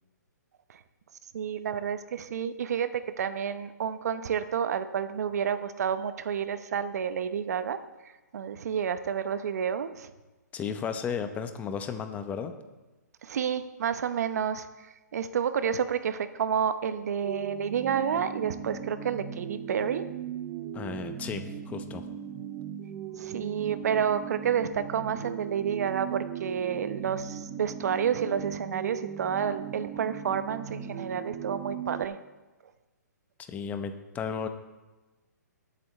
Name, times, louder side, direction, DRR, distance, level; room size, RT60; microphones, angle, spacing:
voice 1, 1.3-10.1 13.2-20.0 23.2-32.2, right 8 dB, 60° right, 12 dB, 0.8 m, -30 dB
voice 2, 10.5-12.5 20.7-22.0 33.5-34.5, left 6 dB, 15° left, 8 dB, 0.7 m, -34 dB
sound 1, 17.2-32.0, right 8 dB, 20° right, 0.6 m, -38 dB
19.5 x 8.4 x 3.2 m, 1.2 s
hypercardioid pair, 140°, 10 cm